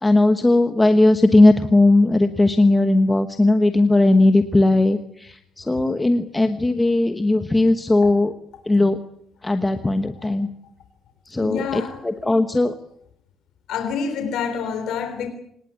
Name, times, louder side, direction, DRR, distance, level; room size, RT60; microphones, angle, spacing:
voice 1, 0.0-8.3 8.7-9.0 9.4-10.5 11.3-12.7, left 2 dB, 10° left, 1.2 m, -18 dB
voice 2, 11.4-12.0 13.7-15.3, left 6 dB, 75° left, 3.5 m, -28 dB
26.0 x 20.0 x 9.6 m
cardioid pair, 175°, 0 cm